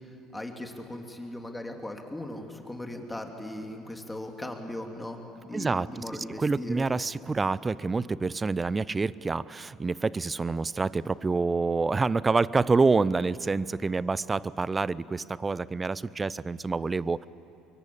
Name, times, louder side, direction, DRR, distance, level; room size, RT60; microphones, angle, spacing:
voice 1, 0.3-6.9, left 1 dB, 10° left, 3 dB, 3.1 m, -38 dB
voice 2, 5.5-17.3, right 4 dB, 25° right, 20 dB, 0.6 m, -27 dB
25.0 x 23.0 x 8.6 m, 3.0 s
hypercardioid pair, 65°, 0 cm